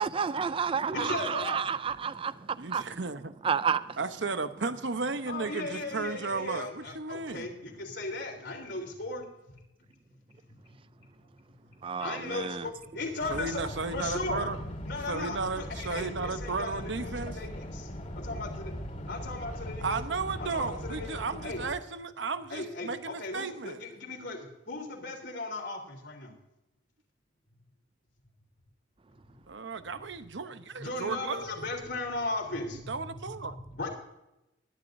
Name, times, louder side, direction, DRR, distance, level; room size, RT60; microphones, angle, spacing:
voice 1, 0.0-2.3 2.7-2.8 3.4-3.8 11.8-12.6, right 6 dB, 30° right, 0.4 m, -30 dB
voice 2, 0.9-1.6 5.3-9.2 12.0-14.5 14.9-17.9 18.1-18.7 19.1-20.0 20.4-21.2 21.4-21.6 22.5-26.3 30.8-33.2 33.7-33.9, left 2 dB, 65° left, 3.5 m, -37 dB
voice 3, 2.6-3.3 4.0-7.5 13.3-14.6 15.1-17.4 19.8-23.8 29.5-31.5 32.9-33.6, right 4 dB, 75° right, 0.9 m, -34 dB
sound 1, 13.2-21.7, equal, 45° left, 2.3 m, -40 dB
21.0 x 11.0 x 2.7 m
head